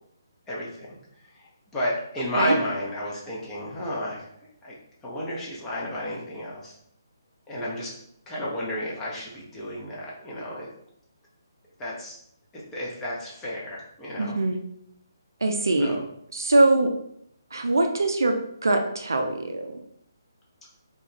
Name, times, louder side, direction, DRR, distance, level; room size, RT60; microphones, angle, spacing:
voice 1, 0.5-1.0 1.7-4.2 4.6-4.7 5.0-6.7 7.5-7.9 8.3-10.7 11.8-12.1 12.7-14.4 15.7-16.0, left 1 dB, 10° left, -6 dB, 0.6 m, -32 dB
voice 2, 14.2-14.6 15.4-16.0 16.3-16.9 17.5-18.4 18.6-19.7, right 2 dB, 65° right, 4 dB, 0.4 m, -22 dB
2.3 x 2.3 x 3.0 m, 0.72 s
figure-of-eight pair, 140°, 2 cm